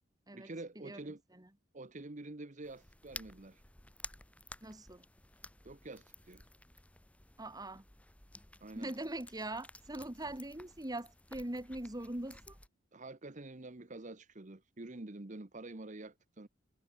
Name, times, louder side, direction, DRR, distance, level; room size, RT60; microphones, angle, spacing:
voice 1, 0.3-1.2 1.7-3.6 5.6-6.4 8.6-8.9 12.9-16.5, right 2 dB, 40° right, 1.1 m, -47 dB
sound 1, 2.6-12.7, left 2 dB, 5° left, 1.0 m, -54 dB
voice 2, 4.6-5.0 7.4-7.9 8.8-12.6, right 1 dB, 20° right, 1.7 m, -42 dB
head